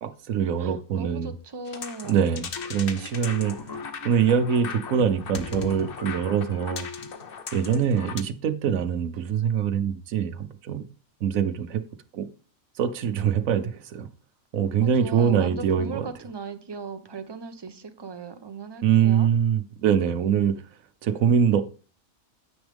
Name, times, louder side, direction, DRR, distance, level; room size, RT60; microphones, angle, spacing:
voice 1, 0.0-1.3 2.1-3.6 4.0-6.9 7.5-10.8 11.2-11.8 12.1-12.3 12.8-14.1 14.5-16.1 18.8-20.6 21.0-21.6, right 8 dB, 85° right, 10 dB, 1.2 m, -24 dB
voice 2, 0.6-2.3 14.8-19.3, right 4 dB, 20° right, 8 dB, 0.8 m, -37 dB
sound 1, 1.7-8.2, left 5 dB, 50° left, 0.9 m, -38 dB
sound 2, 2.6-7.3, left 4 dB, 30° left, 0.4 m, -41 dB
9.5 x 8.0 x 3.5 m, 0.36 s
omnidirectional pair, 1.4 m